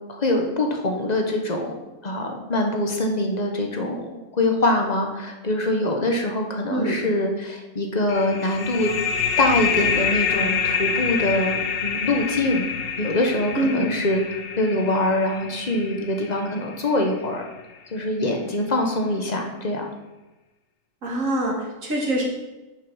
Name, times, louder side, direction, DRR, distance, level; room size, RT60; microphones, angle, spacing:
voice 1, 0.1-1.7 2.0-4.1 4.4-8.9 9.4-12.7 13.0-14.2 14.6-17.5 17.9-19.9, left 1 dB, 35° left, 2 dB, 1.2 m, -24 dB
sound 1, 8.1-17.4, left 6 dB, 50° left, 0.9 m, -27 dB
voice 2, 13.6-13.9 21.0-22.2, right 1 dB, 90° right, -2 dB, 2.4 m, -24 dB
7.4 x 6.6 x 5.5 m, 1.1 s
omnidirectional pair, 1.3 m